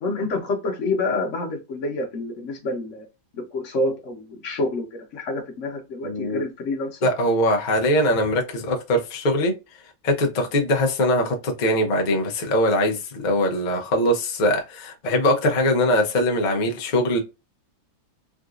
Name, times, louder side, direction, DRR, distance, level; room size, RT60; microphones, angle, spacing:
voice 1, 0.0-3.0 3.3-7.0, left 2 dB, 55° left, 1.1 m, -28 dB
voice 2, 6.0-6.5 7.0-9.5 10.0-17.2, left 1 dB, 80° left, 0.4 m, -22 dB
3.7 x 2.4 x 2.4 m
omnidirectional pair, 1.8 m